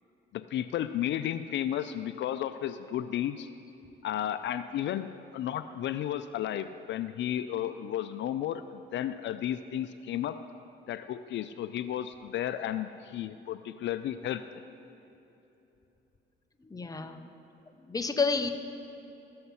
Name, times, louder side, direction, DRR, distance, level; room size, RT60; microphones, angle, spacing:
voice 1, 0.3-3.5 4.0-10.4 10.9-14.4, left 11 dB, 65° left, 11 dB, 0.4 m, -33 dB
voice 2, 16.6-17.3 17.9-18.5, left 4 dB, 20° left, 8 dB, 0.7 m, -30 dB
14.0 x 7.7 x 5.5 m, 2.9 s
cardioid pair, 90°, 20 cm